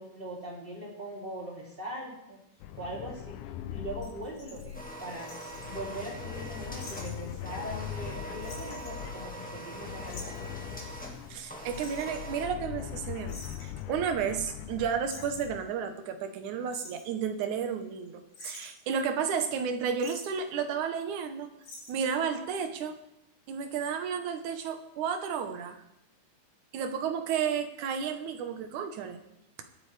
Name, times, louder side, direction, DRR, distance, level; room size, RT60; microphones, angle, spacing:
voice 1, 0.0-2.4 2.7-5.3 5.6-10.6, right 1 dB, 20° right, -3 dB, 2.8 m, -41 dB
sound 1, 2.6-15.7, left 11 dB, 90° left, 2.1 m, -41 dB
sound 2, 4.0-5.7 6.8-7.1 7.4-7.5 7.8-8.1 8.4-9.6 10.1-10.5 11.7-12.3 13.3-13.8 14.7-14.8 15.0-15.6 16.4-17.1 17.8-18.1 18.3-18.9 20.0-20.4 21.6-22.3 22.5-22.6, left 2 dB, 70° left, 5.0 m, -48 dB
sound 3, 4.7-12.5, right 1 dB, 5° left, 0.7 m, -43 dB
voice 2, 11.3-21.5 21.9-23.0 23.5-25.8 26.7-29.2, right 7 dB, 75° right, 7 dB, 2.5 m, -32 dB
22.5 x 8.7 x 3.3 m, 0.82 s
omnidirectional pair, 3.5 m